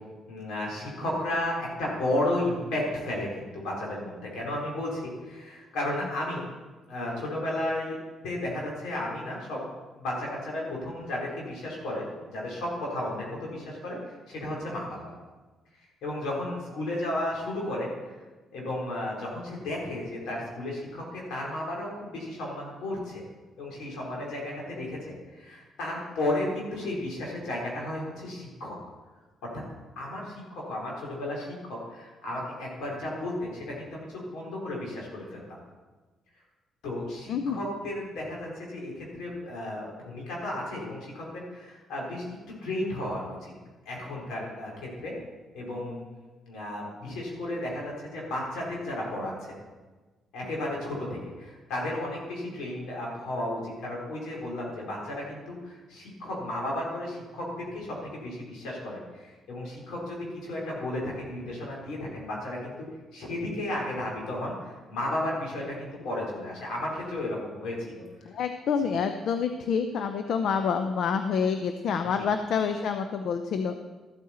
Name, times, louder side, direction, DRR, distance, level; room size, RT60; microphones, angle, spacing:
voice 1, 0.3-6.5 6.9-8.0 8.2-9.7 10.0-14.0 14.3-15.1 16.0-17.9 18.5-23.2 23.6-28.8 30.0-35.6 36.8-42.3 42.6-43.5 43.9-45.2 45.5-46.0 46.5-49.6 50.3-62.7 63.1-68.0 68.8-69.0, left 1 dB, 85° left, -3 dB, 3.9 m, -33 dB
voice 2, 37.3-37.6 68.3-73.8, left 6 dB, 70° left, 8 dB, 0.6 m, -27 dB
13.5 x 8.6 x 4.3 m, 1.3 s
cardioid pair, 90°, 0 cm